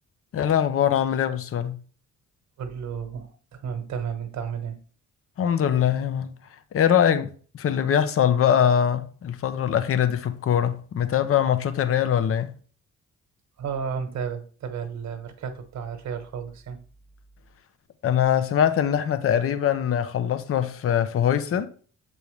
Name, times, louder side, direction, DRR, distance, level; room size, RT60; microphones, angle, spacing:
voice 1, 0.3-1.8 5.4-6.3 6.7-12.5 18.0-21.7, left 9 dB, 50° left, 0.7 m, -22 dB
voice 2, 2.6-4.8 13.6-16.8, right 7 dB, 65° right, 1.3 m, -32 dB
6.9 x 4.5 x 3.2 m
cardioid pair, 90°, 30 cm